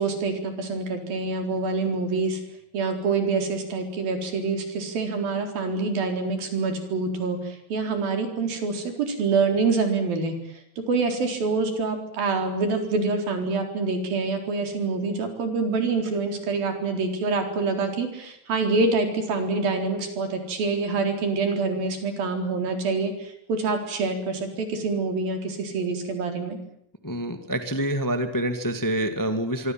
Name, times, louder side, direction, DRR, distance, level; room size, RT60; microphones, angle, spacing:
voice 1, 0.0-2.4 2.7-26.6, right 4 dB, 90° right, 5 dB, 5.9 m, -26 dB
voice 2, 27.0-29.7, right 1 dB, 10° left, 8 dB, 1.3 m, -26 dB
24.5 x 24.5 x 7.6 m, 0.73 s
omnidirectional pair, 4.0 m